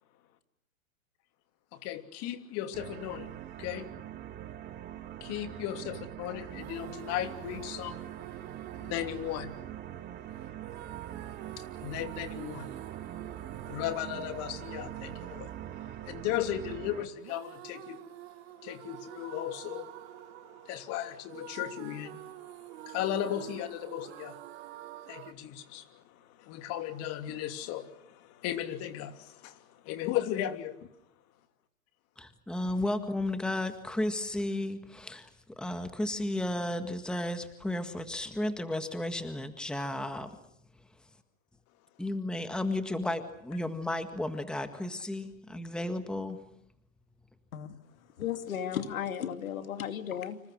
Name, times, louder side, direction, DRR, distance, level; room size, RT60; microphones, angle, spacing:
voice 1, 1.7-3.3 3.6-3.9 5.2-18.0 18.6-24.4 25.1-30.7, left 11 dB, 35° left, 2.9 m, -37 dB
sound 1, 2.7-17.1, right 11 dB, 25° right, 1.6 m, -43 dB
sound 2, 6.5-25.3, right 16 dB, 50° right, 1.6 m, -48 dB
voice 2, 32.2-40.3 42.0-46.4, left 1 dB, ahead, 1.7 m, -33 dB
voice 3, 48.2-50.4, left 9 dB, 75° left, 2.6 m, -35 dB
30.0 x 27.0 x 6.4 m
hypercardioid pair, 130°, 41 cm